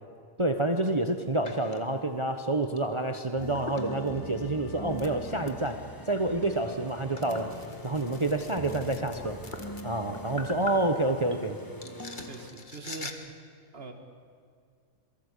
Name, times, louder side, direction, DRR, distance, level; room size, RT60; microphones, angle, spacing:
voice 1, 0.4-5.8 6.1-7.5 7.8-9.4 9.8-11.6, right 2 dB, 25° right, 6 dB, 1.1 m, -28 dB
sound 1, 0.7-1.0 1.4-1.8 2.6-2.8 3.1-11.5 11.8-13.1, left 3 dB, 35° left, 1.9 m, -44 dB
sound 2, 3.4-12.5, equal, 15° left, 1.8 m, -42 dB
voice 2, 12.3-13.4 13.7-13.9, right 3 dB, 45° right, 5 dB, 2.4 m, -42 dB
27.5 x 23.0 x 8.4 m, 2.2 s
omnidirectional pair, 1.4 m